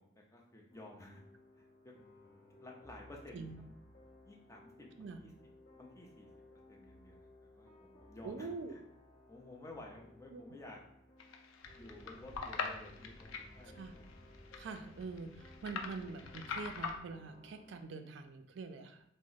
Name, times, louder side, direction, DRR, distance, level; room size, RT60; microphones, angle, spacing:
voice 1, 0.0-1.2 1.6-1.7 2.6-3.7 4.2-5.3 5.7-6.3 6.7-8.8 9.3-10.8 11.7-14.1 14.8-14.9, left 2 dB, 15° left, -1 dB, 0.4 m, -53 dB
sound 1, 0.7-17.8, left 2 dB, 50° left, 0.7 m, -60 dB
voice 2, 8.2-8.8 10.3-10.4 13.8-13.9 14.6-19.0, right 4 dB, 60° right, 7 dB, 0.3 m, -45 dB
sound 2, 11.2-16.9, left 5 dB, 85° left, 0.4 m, -43 dB
sound 3, 11.6-17.0, equal, 20° right, 1.2 m, -59 dB
2.9 x 2.0 x 3.8 m, 0.76 s
head